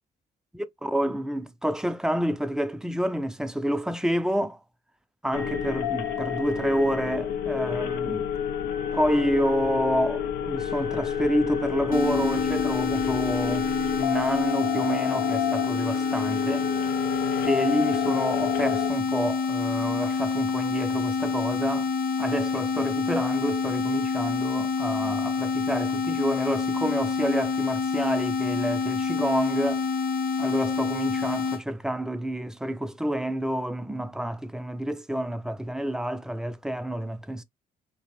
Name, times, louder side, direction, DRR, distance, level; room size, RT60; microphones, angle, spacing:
voice 1, 0.5-4.6 5.2-8.3 8.9-13.7 14.0-16.7 17.4-21.9 22.2-29.8 30.4-37.4, equal, 5° right, 0.3 m, -28 dB
sound 1, 5.3-18.9, left 9 dB, 90° left, 0.4 m, -30 dB
sound 2, 11.9-31.6, left 4 dB, 60° left, 0.7 m, -27 dB
2.4 x 2.0 x 2.9 m
cardioid pair, 80°, 17 cm